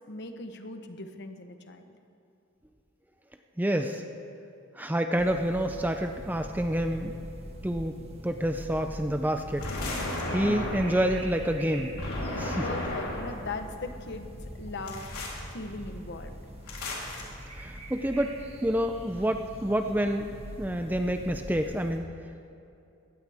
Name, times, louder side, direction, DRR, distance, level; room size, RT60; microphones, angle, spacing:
voice 1, 0.1-2.0 10.4-10.7 12.6-15.1 15.5-16.3, left 2 dB, 50° left, 7 dB, 1.1 m, -39 dB
voice 2, 3.6-4.0 4.8-7.1 7.6-8.0 8.2-9.7 10.3-11.9 12.4-12.6 17.6-22.1, right 1 dB, 10° right, 6 dB, 0.5 m, -28 dB
sound 1, 5.2-22.0, equal, 25° right, 1.5 m, -43 dB
sound 2, 9.6-11.1 12.0-13.4 14.9-15.4 16.7-17.2, left 2 dB, 85° left, 3.6 m, -34 dB
21.5 x 17.0 x 3.6 m, 2.6 s
head